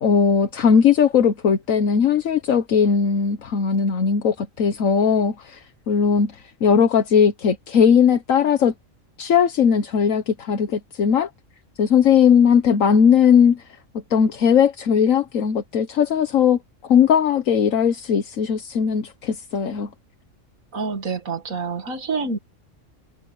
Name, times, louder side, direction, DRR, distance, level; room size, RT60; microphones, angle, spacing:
voice 1, 0.0-8.7 9.2-11.3 11.8-13.6 14.1-19.9, left 7 dB, 75° left, 1.5 m, -18 dB
voice 2, 20.7-22.4, right 4 dB, 85° right, 2.6 m, -27 dB
omnidirectional pair, 1.4 m